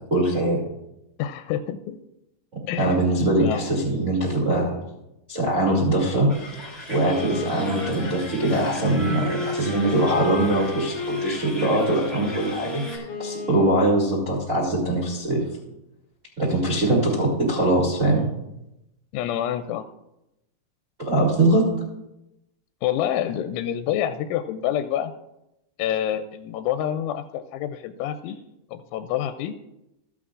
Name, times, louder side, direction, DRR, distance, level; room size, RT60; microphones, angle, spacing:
voice 1, 0.1-0.6 2.8-4.8 5.3-6.3 6.9-15.4 16.4-18.3 21.0-21.6, right 1 dB, 85° right, -6 dB, 0.6 m, -22 dB
voice 2, 1.2-2.0 2.7-3.0 3.4-3.6 19.1-19.8 22.8-25.1 25.8-28.4 28.7-29.5, left 11 dB, 85° left, 9 dB, 2.9 m, -27 dB
sound 1, 6.3-13.0, equal, 30° left, 0.4 m, -38 dB
Wind instrument woodwind instrument, 7.0-14.2, left 3 dB, 60° left, 1.6 m, -34 dB
15.5 x 8.2 x 2.5 m, 0.90 s
omnidirectional pair, 5.5 m